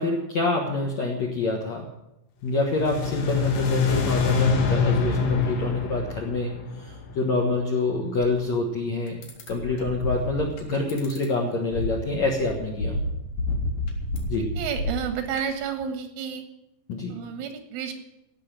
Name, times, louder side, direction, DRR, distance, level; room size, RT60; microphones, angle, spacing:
voice 1, 0.0-1.8 2.4-6.5 7.1-9.1 9.5-13.0 14.3-14.5 16.9-17.1, left 2 dB, 65° left, -1 dB, 1.7 m, -26 dB
sound 1, 2.6-7.8, left 5 dB, 85° left, 4.1 m, -25 dB
sound 2, 8.4-8.5 9.1-11.2 11.7-15.7, left 1 dB, 50° left, 3.1 m, -30 dB
voice 2, 14.6-16.5 17.1-17.9, right 8 dB, 90° right, 7 dB, 4.1 m, -31 dB
16.5 x 6.2 x 9.0 m, 0.89 s
omnidirectional pair, 5.5 m